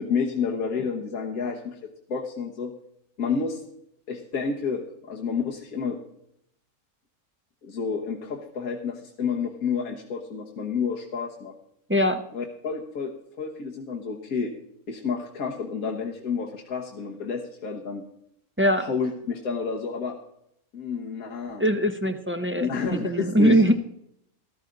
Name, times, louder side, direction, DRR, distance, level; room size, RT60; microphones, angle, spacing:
voice 1, 0.0-1.8 2.1-2.7 3.2-3.6 4.1-6.0 7.6-11.5 12.3-13.1 13.4-14.5 14.9-18.0 18.8-20.2 20.7-21.6 22.6-23.7, left 5 dB, 75° left, 0 dB, 1.8 m, -30 dB
voice 2, 11.9-12.2 18.6-18.9 21.6-23.7, equal, 20° right, 6 dB, 0.3 m, -22 dB
13.5 x 13.5 x 3.9 m, 0.74 s
omnidirectional pair, 1.5 m